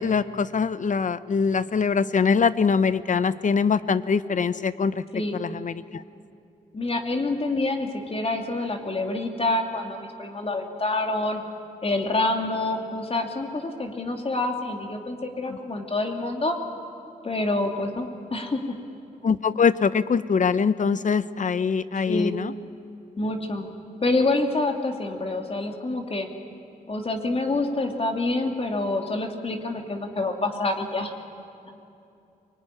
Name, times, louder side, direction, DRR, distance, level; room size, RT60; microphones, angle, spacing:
voice 1, 0.0-5.0 5.3-6.0 19.2-22.5, left 5 dB, 55° left, 15 dB, 0.8 m, -23 dB
voice 2, 6.7-11.4 11.8-16.6 17.2-18.8 22.1-22.4 23.2-23.7 24.0-26.3 26.9-31.1, left 2 dB, 40° left, 3 dB, 2.7 m, -27 dB
24.0 x 21.0 x 10.0 m, 2.7 s
cardioid pair, 75°, 16 cm